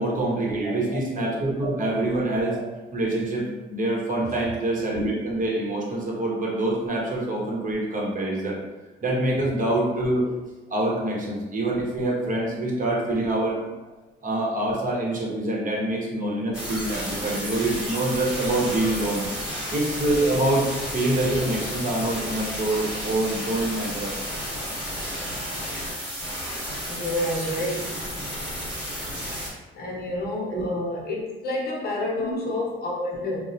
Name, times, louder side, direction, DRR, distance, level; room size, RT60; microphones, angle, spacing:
voice 1, 0.0-2.6 2.9-8.6 9.0-10.3 10.7-13.6 14.2-19.2 19.7-20.7 20.9-24.2 30.5-30.6 32.2-32.3, right 1 dB, 40° right, -3 dB, 0.8 m, -25 dB
sound 1, 16.5-29.5, equal, 5° right, 1.2 m, -32 dB
voice 2, 26.9-28.0 29.5-33.4, left 1 dB, 50° left, -3 dB, 0.8 m, -29 dB
3.1 x 2.0 x 2.6 m, 1.2 s
cardioid pair, 90°, 20 cm